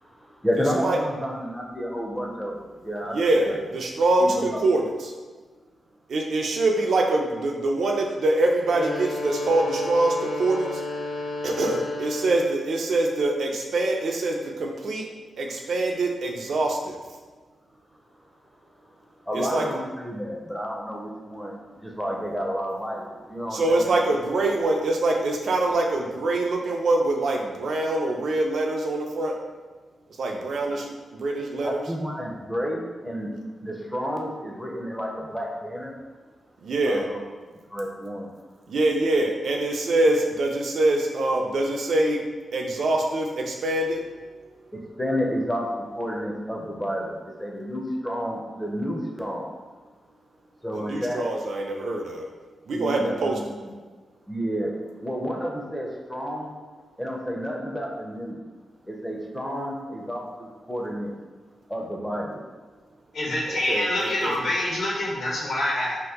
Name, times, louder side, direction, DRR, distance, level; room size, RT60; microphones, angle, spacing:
voice 1, 0.0-3.2 3.5-3.6 4.2-4.6 19.3-23.9 30.7-30.8 31.6-33.3 33.6-35.9 36.8-37.2 37.7-38.3 44.7-49.5 50.6-51.3 52.7-53.7 54.3-54.7 55.0-56.5 57.0-58.4 58.9-61.1 61.7-62.4, equal, 5° left, -1 dB, 0.5 m, -30 dB
voice 2, 3.1-5.1 6.1-10.8 11.4-15.1 15.4-17.0 19.3-19.6 23.5-29.3 30.2-31.8 36.6-37.0 38.7-42.2 42.5-44.0 50.7-52.3 52.7-53.4 63.5-64.3, right 2 dB, 65° right, 1 dB, 0.5 m, -24 dB
sound 1, 8.6-12.7, left 2 dB, 40° left, 0.7 m, -32 dB
voice 3, 63.1-66.0, left 1 dB, 65° left, -4 dB, 0.9 m, -26 dB
2.8 x 2.5 x 3.5 m, 1.4 s
wide cardioid pair, 150°, 0 cm